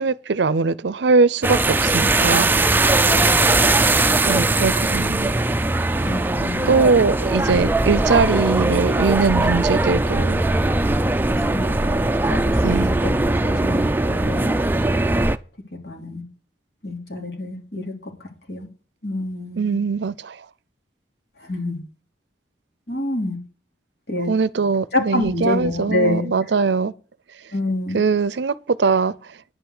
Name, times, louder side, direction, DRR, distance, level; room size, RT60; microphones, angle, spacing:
voice 1, 0.0-2.5 4.2-5.4 6.7-10.4 12.6-12.9 19.6-20.4 24.2-26.9 27.9-29.1, right 4 dB, 75° right, 0.5 m, -21 dB
sound 1, 1.4-15.4, right 2 dB, 10° right, 0.4 m, -20 dB
voice 2, 2.8-3.8 6.0-6.9 11.3-12.0 12.3-13.1 13.4-14.6 15.8-16.2 16.8-18.7 19.0-19.8 21.4-21.8 22.9-23.4 24.1-24.3 24.9-26.3 27.5-28.0, left 2 dB, 65° left, 3.2 m, -27 dB
10.0 x 5.7 x 8.0 m
head